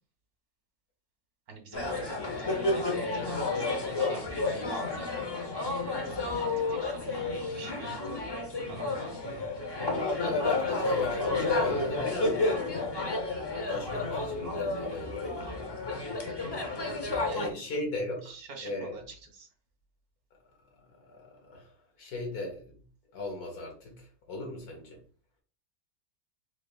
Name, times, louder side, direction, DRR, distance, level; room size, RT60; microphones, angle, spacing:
voice 1, 1.5-5.3 5.7-8.1 8.6-9.2 17.2-17.6 18.2-19.5, right 3 dB, 80° right, 3 dB, 1.6 m, -47 dB
sound 1, 1.7-17.5, left 3 dB, 40° left, 0.3 m, -31 dB
voice 2, 10.0-12.4 13.7-15.4 17.3-18.3 18.6-19.0 21.1-21.7 22.0-22.7 23.1-25.0, left 1 dB, 75° left, 1 dB, 1.8 m, -38 dB
4.4 x 3.5 x 2.3 m, 0.40 s
omnidirectional pair, 1.6 m